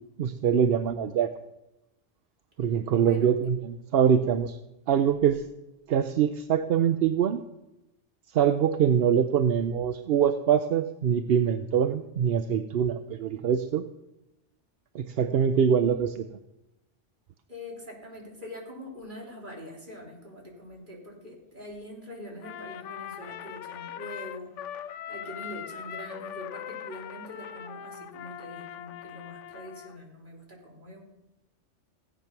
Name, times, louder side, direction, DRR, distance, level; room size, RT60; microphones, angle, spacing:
voice 1, 0.2-1.3 2.6-4.6 4.9-5.4 5.9-7.4 8.3-13.9 14.9-16.3, right 8 dB, 60° right, 10 dB, 0.8 m, -24 dB
voice 2, 2.8-3.3 17.5-31.0, left 1 dB, 45° right, -2 dB, 3.6 m, -44 dB
Trumpet, 22.4-30.0, left 9 dB, 80° left, 1.0 m, -40 dB
16.5 x 9.0 x 5.9 m, 0.92 s
omnidirectional pair, 1.2 m